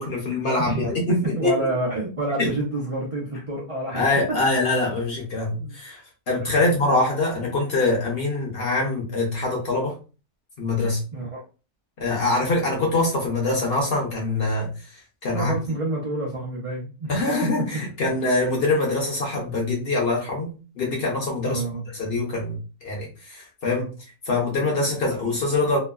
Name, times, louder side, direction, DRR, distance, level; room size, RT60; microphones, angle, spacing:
voice 1, 0.0-1.5 2.4-2.5 3.9-6.0 6.3-9.9 10.6-11.0 12.0-14.7 15.2-15.5 17.1-21.6 21.9-23.9 24.3-25.8, left 2 dB, 55° left, -1 dB, 0.8 m, -24 dB
voice 2, 0.6-0.9 1.2-4.0 5.5-5.8 6.3-6.8 11.1-11.4 15.3-17.1 17.4-17.7 21.4-21.9, right 2 dB, 65° right, -4 dB, 0.3 m, -28 dB
3.0 x 2.1 x 2.3 m, 0.33 s
omnidirectional pair, 1.6 m